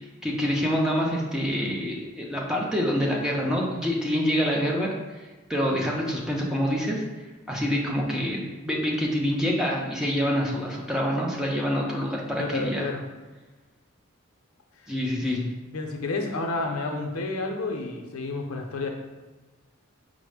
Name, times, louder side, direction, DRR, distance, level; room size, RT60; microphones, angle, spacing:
voice 1, 0.2-4.9 5.5-7.0 7.5-12.9 14.9-15.4, equal, 5° right, -2 dB, 0.5 m, -26 dB
voice 2, 12.4-13.0 14.8-14.9 15.2-15.3 15.7-18.9, left 3 dB, 85° left, 3 dB, 0.6 m, -30 dB
5.2 x 2.1 x 4.8 m, 1.2 s
head